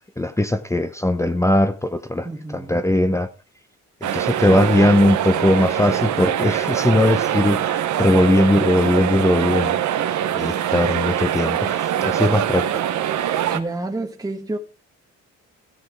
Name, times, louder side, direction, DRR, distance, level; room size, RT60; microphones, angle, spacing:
voice 1, 0.2-3.3 4.0-9.8 10.3-12.7, left 1 dB, 10° left, 0.8 m, -19 dB
voice 2, 2.2-2.8 13.5-14.6, right 2 dB, 15° right, 1.3 m, -29 dB
sound 1, 4.0-13.6, right 10 dB, 70° right, 1.1 m, -23 dB
16.5 x 5.7 x 4.8 m
cardioid pair, 90°, 30 cm